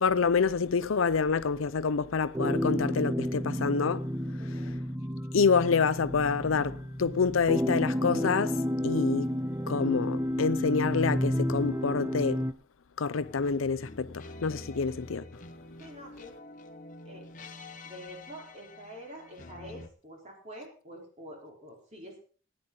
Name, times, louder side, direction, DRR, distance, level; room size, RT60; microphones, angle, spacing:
voice 1, 0.0-4.1 5.3-8.5 8.8-9.3 9.7-12.4 13.0-15.2, left 5 dB, 85° left, 0.6 m, -27 dB
sound 1, 2.3-12.5, equal, 10° right, 0.6 m, -31 dB
voice 2, 4.4-4.8 15.8-16.4 17.0-17.3 17.8-22.2, equal, 35° right, 4.2 m, -47 dB
sound 2, 13.1-19.9, left 2 dB, 40° left, 1.1 m, -47 dB
17.5 x 10.5 x 3.9 m
head